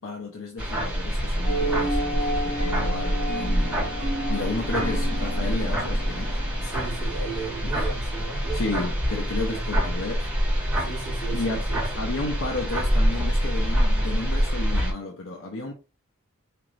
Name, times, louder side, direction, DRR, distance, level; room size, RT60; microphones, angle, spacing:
voice 1, 0.0-3.9 4.3-6.4 7.6-7.7 8.5-10.3 11.3-11.6 11.9-15.7, left 3 dB, 65° left, 0.7 m, -32 dB
sound 1, 0.6-14.9, equal, 5° right, 1.2 m, -26 dB
sound 2, 1.4-6.4, right 1 dB, 25° left, 0.8 m, -32 dB
sound 3, 2.6-7.7, equal, 35° right, 1.0 m, -37 dB
voice 2, 6.6-8.8 9.5-9.6 10.8-12.1, right 4 dB, 45° left, 2.0 m, -36 dB
4.4 x 2.5 x 3.1 m
head